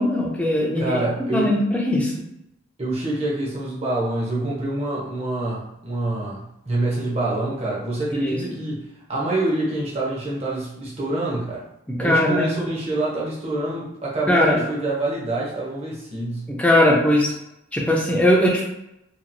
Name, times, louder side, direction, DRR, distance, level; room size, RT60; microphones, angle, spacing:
voice 1, 0.0-1.0 1.3-2.1 8.1-8.4 11.9-12.5 14.3-14.6 16.6-17.3 17.7-18.6, left 1 dB, 5° left, -3 dB, 0.5 m, -19 dB
voice 2, 0.8-1.6 2.8-11.7 12.0-16.5, right 2 dB, 30° right, -5 dB, 0.7 m, -26 dB
2.8 x 2.4 x 2.6 m, 0.85 s
head